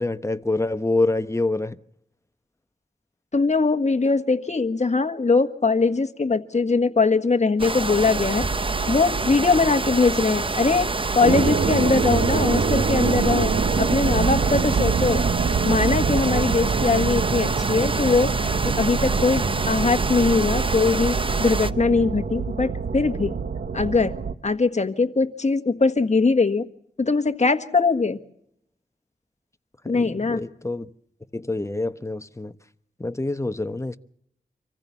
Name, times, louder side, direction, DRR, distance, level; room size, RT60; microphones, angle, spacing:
voice 1, 0.0-1.8 29.8-30.9 31.3-32.5 33.0-34.0, left 2 dB, 15° left, 1.0 m, -26 dB
voice 2, 3.3-8.5 8.9-10.9 11.1-13.5 13.8-15.2 15.6-18.3 18.6-23.3 23.7-24.1 24.4-26.6 27.0-28.2 29.9-30.4, left 4 dB, 45° left, 1.6 m, -21 dB
sound 1, 7.6-21.7, right 3 dB, 30° right, 0.8 m, -27 dB
sound 2, 8.0-24.3, right 5 dB, 70° right, 1.1 m, -25 dB
26.0 x 15.0 x 7.2 m
wide cardioid pair, 60°, 17 cm